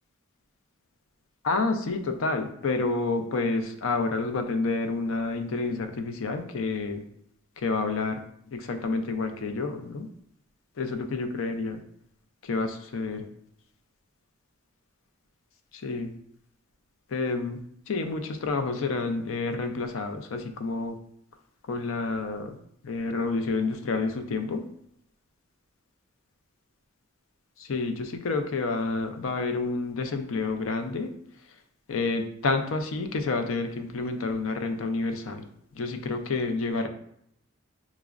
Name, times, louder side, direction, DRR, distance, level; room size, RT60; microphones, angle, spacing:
voice 1, 1.4-7.0 7.6-8.2 8.5-10.1 10.8-11.8 12.4-13.3 15.7-16.1 17.1-21.0 21.7-22.6 22.8-24.6 27.6-31.1 31.9-35.5 35.8-36.9, left 3 dB, 70° left, 7 dB, 0.5 m, -29 dB
5.7 x 2.1 x 2.4 m, 0.72 s
head